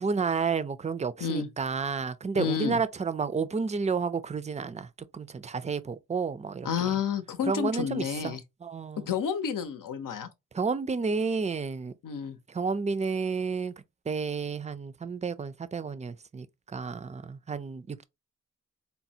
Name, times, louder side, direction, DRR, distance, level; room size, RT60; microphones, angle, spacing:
voice 1, 0.0-4.9 5.1-6.9 7.4-9.1 10.5-11.9 12.5-13.7 14.1-16.5 16.7-18.0, right 5 dB, 20° right, 0.4 m, -31 dB
voice 2, 2.3-2.8 6.6-8.4 9.1-10.3 12.0-12.4, left 7 dB, 80° left, 0.7 m, -30 dB
4.1 x 2.1 x 2.7 m
cardioid pair, 50°, 32 cm